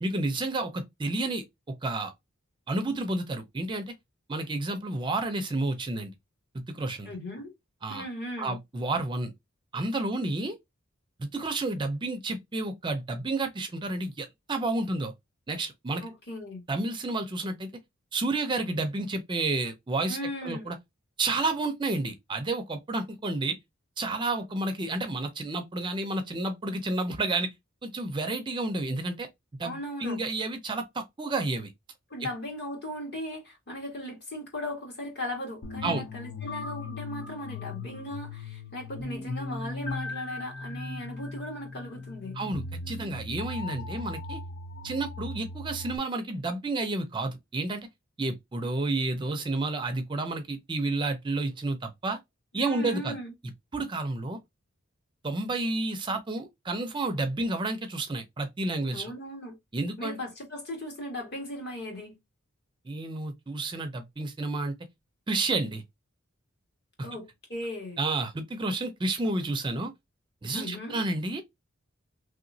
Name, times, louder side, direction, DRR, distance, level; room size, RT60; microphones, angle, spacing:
voice 1, 0.0-1.4 1.8-2.1 2.7-3.9 4.3-6.1 6.7-7.1 7.8-8.1 8.4-9.3 9.7-10.6 11.2-15.1 15.5-16.0 16.7-17.7 18.1-20.2 20.4-20.8 21.2-23.6 24.0-27.5 27.8-29.3 29.6-31.7 35.8-36.0 42.4-44.4 44.8-47.9 48.2-52.2 52.5-53.2 53.7-54.4 55.2-59.1 59.7-60.2 62.9-64.7 65.3-65.8 67.0-67.1 68.0-69.9 70.4-71.4, right 2 dB, 25° right, 0.4 m, -30 dB
voice 2, 7.0-7.5 7.9-8.6 16.0-16.6 20.1-20.8 29.6-30.2 32.1-42.4 52.5-53.3 58.9-59.5 60.0-62.2 67.0-68.0 70.5-71.0, left 1 dB, 50° left, 1.6 m, -37 dB
sound 1, 35.6-46.0, left 3 dB, 70° left, 0.6 m, -38 dB
3.1 x 2.9 x 2.6 m
head